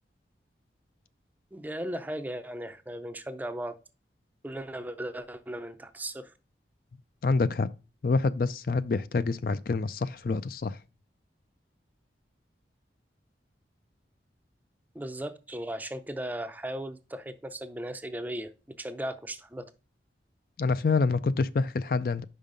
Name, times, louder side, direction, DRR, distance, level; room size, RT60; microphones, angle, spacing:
voice 1, 1.5-3.7 4.4-6.3 14.9-18.5 18.8-19.7, right 1 dB, 10° right, 0.5 m, -37 dB
voice 2, 7.2-7.7 8.0-10.8 20.6-22.2, left 4 dB, 55° left, 0.4 m, -27 dB
5.5 x 5.4 x 5.1 m
head